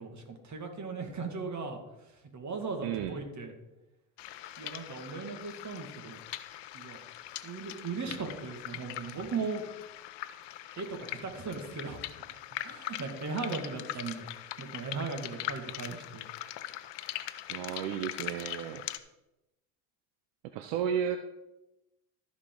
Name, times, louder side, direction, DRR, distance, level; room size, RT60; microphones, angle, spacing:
voice 1, 0.0-3.5 4.6-6.2 6.7-7.0 7.4-9.7 10.8-12.0 12.6-14.3 14.6-16.2, right 4 dB, 35° right, 5 dB, 2.1 m, -38 dB
voice 2, 2.8-3.2 17.5-18.9 20.5-21.2, right 9 dB, 70° right, 8 dB, 0.8 m, -33 dB
sound 1, 4.2-19.0, left 14 dB, 65° left, 0.8 m, -42 dB
14.0 x 5.3 x 3.9 m, 0.94 s
supercardioid pair, 75°, 46 cm